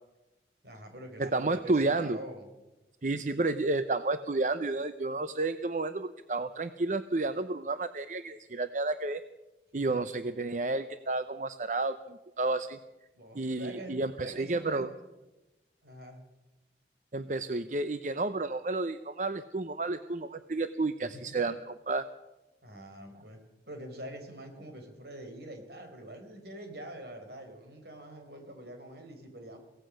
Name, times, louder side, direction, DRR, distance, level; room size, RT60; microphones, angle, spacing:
voice 1, 0.6-2.5 9.7-10.1 13.1-14.9 15.8-16.3 21.0-21.5 22.6-29.6, right 1 dB, 65° right, 5 dB, 4.5 m, -46 dB
voice 2, 1.2-2.2 3.0-9.2 9.7-12.8 13.3-14.9 17.1-22.1, right 2 dB, 45° right, 11 dB, 0.7 m, -31 dB
23.5 x 17.5 x 6.4 m, 1.1 s
head